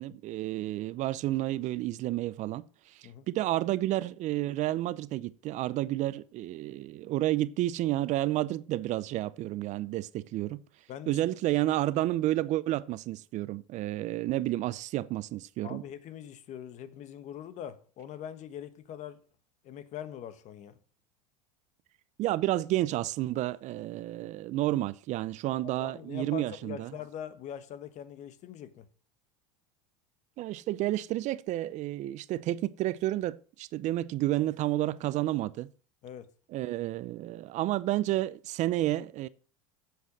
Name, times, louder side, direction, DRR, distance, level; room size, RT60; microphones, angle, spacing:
voice 1, 0.0-10.6 11.1-15.8 22.2-26.9 30.4-35.7 36.5-39.3, right 15 dB, 45° right, 0.6 m, -30 dB
voice 2, 15.6-19.2 19.6-20.8 25.8-28.9 36.0-36.3, left 9 dB, 45° left, 1.3 m, -42 dB
8.2 x 7.9 x 6.0 m
hypercardioid pair, 100°, 16 cm